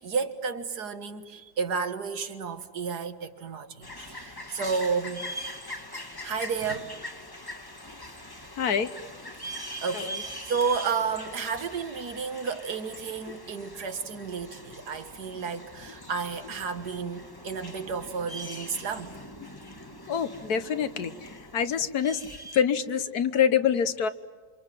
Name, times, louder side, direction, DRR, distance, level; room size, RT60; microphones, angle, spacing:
voice 1, 0.0-5.3 6.2-6.9 9.4-19.2, right 5 dB, 70° right, 2.1 m, -32 dB
sound 1, 3.8-22.6, left 1 dB, 15° left, 1.5 m, -42 dB
voice 2, 8.6-8.9 9.9-10.2 13.3-13.4 20.1-22.2 22.5-24.1, left 8 dB, 65° left, 1.6 m, -26 dB
28.0 x 26.5 x 7.6 m
omnidirectional pair, 1.8 m